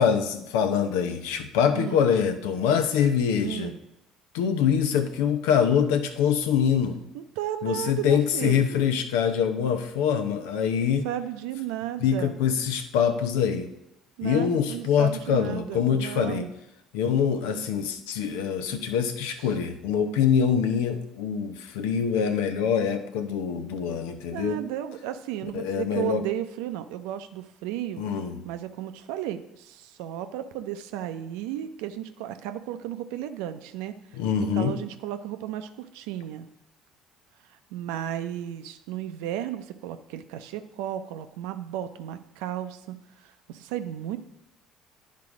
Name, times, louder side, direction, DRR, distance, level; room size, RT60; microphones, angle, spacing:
voice 1, 0.0-3.7 4.3-7.0 7.6-11.1 12.0-13.7 14.2-16.5 16.9-24.6 25.5-26.2 28.0-28.4 34.1-34.7, left 7 dB, 80° left, 8 dB, 0.7 m, -24 dB
voice 2, 1.7-2.1 3.4-3.8 7.1-8.9 11.0-12.4 14.2-16.5 19.4-19.6 24.3-28.1 28.4-36.5 37.5-44.2, right 11 dB, 80° right, 9 dB, 0.5 m, -34 dB
10.5 x 3.7 x 4.9 m, 0.84 s
hypercardioid pair, 65°, 0 cm